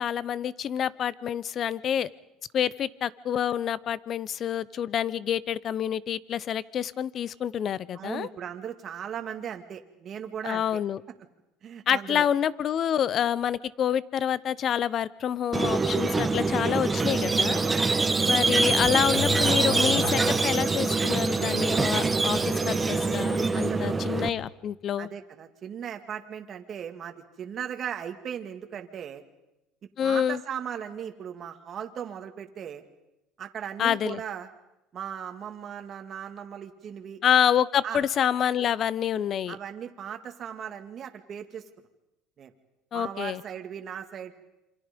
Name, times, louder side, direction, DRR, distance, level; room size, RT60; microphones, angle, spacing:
voice 1, 0.0-2.1 2.5-8.3 10.4-11.0 11.9-17.6 18.2-22.4 22.7-25.1 30.0-30.4 33.8-34.2 37.2-39.6 42.9-43.4, left 9 dB, 45° left, 20 dB, 0.8 m, -27 dB
voice 2, 7.9-10.6 11.6-12.3 17.6-18.0 18.3-18.5 23.5-24.1 25.0-29.2 30.0-32.8 33.4-34.5 34.9-37.2 37.8-38.0 39.5-41.6 42.4-42.5 42.9-44.3, right 8 dB, 40° right, 5 dB, 2.1 m, -37 dB
Squeak, 15.5-24.3, right 3 dB, 15° right, 1.7 m, -24 dB
Car / Accelerating revving vroom, 18.6-20.9, left 3 dB, 85° left, 3.9 m, -33 dB
28.0 x 26.0 x 5.3 m, 0.92 s
supercardioid pair, 115°, 0 cm